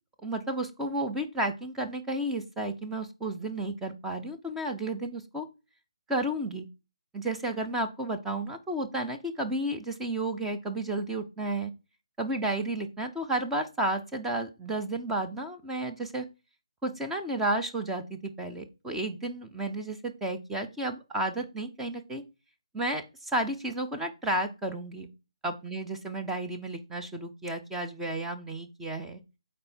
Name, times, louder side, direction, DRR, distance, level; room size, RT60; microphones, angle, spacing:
voice 1, 0.2-5.5 6.1-6.7 7.1-11.7 12.2-16.3 16.8-22.2 22.7-25.1 25.4-29.2, right 1 dB, 5° right, 3 dB, 0.5 m, -32 dB
8.6 x 4.3 x 4.4 m, 0.29 s
figure-of-eight pair, 155°, 3 cm